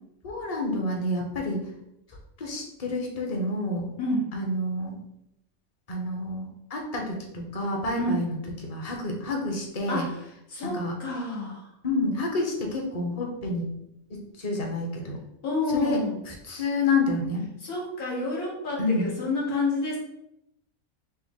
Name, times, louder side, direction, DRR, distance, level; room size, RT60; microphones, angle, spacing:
voice 1, 0.2-1.7 2.4-3.9 4.3-4.9 5.9-8.4 8.6-10.1 10.6-10.9 11.8-13.7 14.1-15.2 15.7-16.0 16.3-17.5 18.8-19.1, left 2 dB, 35° left, 0 dB, 0.6 m, -29 dB
voice 2, 4.0-4.3 8.0-8.2 9.9-10.2 10.5-11.7 15.4-16.1 17.6-20.0, left 2 dB, 85° left, -4 dB, 1.7 m, -29 dB
5.5 x 2.0 x 3.6 m, 0.81 s
omnidirectional pair, 1.5 m